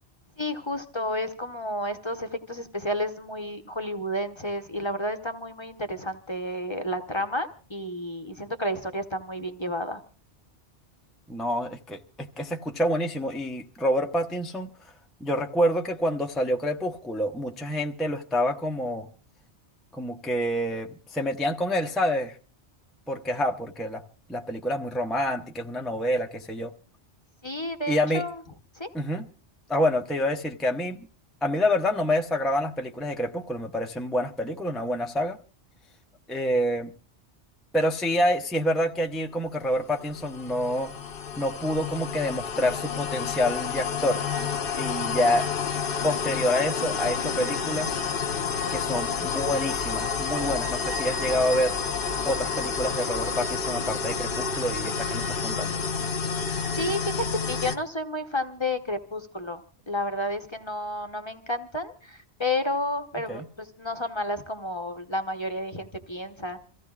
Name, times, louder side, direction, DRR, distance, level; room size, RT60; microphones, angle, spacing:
voice 1, 0.4-10.0 27.4-28.4 28.7-28.9 56.7-66.6, left 1 dB, 25° left, 0.8 m, -31 dB
voice 2, 11.3-14.7 15.2-19.1 19.9-22.4 23.1-24.0 24.3-26.7 27.9-28.2 28.9-29.2 29.7-31.1 31.4-35.4 36.3-36.9 37.7-40.9 41.4-44.2 44.8-45.5 46.0-48.0 48.7-51.8 52.3-55.7 63.3-63.4, equal, ahead, 0.6 m, -27 dB
sound 1, 39.7-57.8, left 5 dB, 55° left, 1.0 m, -29 dB
27.5 x 15.5 x 2.4 m
omnidirectional pair, 1.2 m